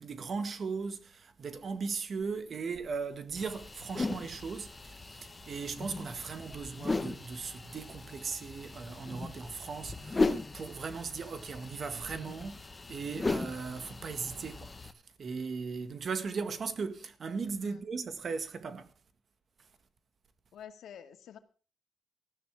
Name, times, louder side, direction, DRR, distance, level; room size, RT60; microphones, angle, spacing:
voice 1, 0.0-14.9 15.2-18.9, right 5 dB, 45° right, 1.9 m, -38 dB
sound 1, 3.4-14.9, left 3 dB, 20° left, 1.3 m, -37 dB
voice 2, 20.5-21.4, left 9 dB, 80° left, 2.1 m, -49 dB
19.5 x 14.5 x 3.7 m
cardioid pair, 140°, 0 cm